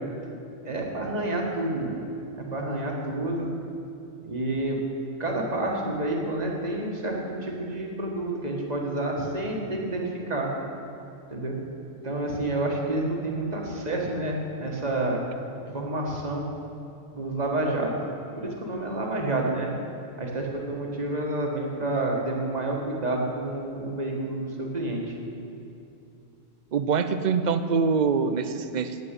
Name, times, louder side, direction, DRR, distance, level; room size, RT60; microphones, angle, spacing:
voice 1, 0.6-3.5 4.2-4.8 5.2-10.5 11.3-11.6 12.0-15.2 15.6-16.4 17.1-17.9 18.4-19.7 20.2-25.1, right 2 dB, 30° right, -1 dB, 1.7 m, -29 dB
voice 2, 26.7-28.9, right 5 dB, 60° right, 10 dB, 0.5 m, -24 dB
9.7 x 8.9 x 8.1 m, 2.7 s
omnidirectional pair, 1.4 m